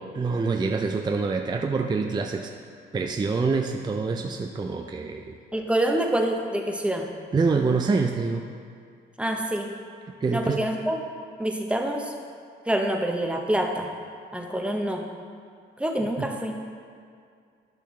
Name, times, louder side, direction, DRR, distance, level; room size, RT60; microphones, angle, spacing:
voice 1, 0.0-2.5 2.9-5.4 7.3-8.5 10.2-10.6 16.2-16.3, right 4 dB, 20° right, 3 dB, 0.4 m, -26 dB
voice 2, 5.5-7.1 9.2-9.7 10.3-11.1 11.4-12.1 12.7-13.9 14.3-15.1 15.8-16.6, right 1 dB, 5° right, 2 dB, 0.9 m, -26 dB
12.0 x 5.8 x 3.2 m, 2.2 s
cardioid pair, 90°, 20 cm